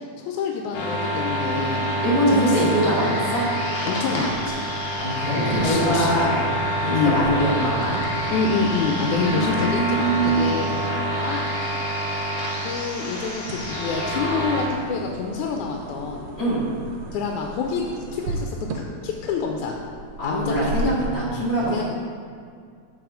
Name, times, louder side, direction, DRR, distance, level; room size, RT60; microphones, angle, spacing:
voice 1, 0.0-1.9 2.3-2.6 3.9-4.9 5.4-6.1 6.9-7.2 8.3-11.4 12.6-16.3 17.1-17.8 18.1-19.8 20.2-20.9 21.6-21.8, left 5 dB, 85° left, 1 dB, 2.0 m, -27 dB
sound 1, 0.7-14.7, right 1 dB, 65° left, 1.9 m, -27 dB
voice 2, 2.0-3.5 5.0-6.4 6.8-8.0 9.0-10.7 16.4-16.6 20.2-21.8, right 1 dB, 40° left, -8 dB, 2.0 m, -23 dB
sound 2, 4.3-21.1, right 2 dB, 80° right, 1.4 m, -37 dB
7.9 x 4.2 x 4.9 m, 2.2 s
omnidirectional pair, 3.4 m